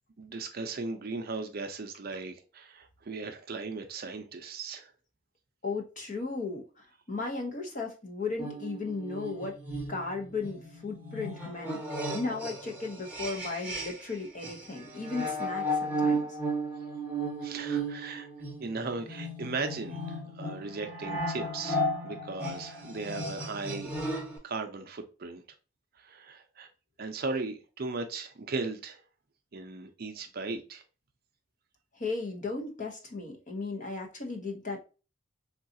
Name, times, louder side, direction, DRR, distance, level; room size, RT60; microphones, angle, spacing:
voice 1, 0.2-4.9 17.4-18.3 18.6-23.9 24.4-25.4 26.0-26.7 27.0-29.0 29.5-30.8, right 3 dB, 45° right, 0.5 m, -37 dB
voice 2, 5.6-6.7 7.1-9.6 9.9-11.8 12.1-16.4 32.0-34.8, left 3 dB, 40° left, 0.7 m, -35 dB
sound 1, 8.4-14.1 14.4-24.4, right 1 dB, 10° right, 0.8 m, -35 dB
3.7 x 2.3 x 2.6 m
head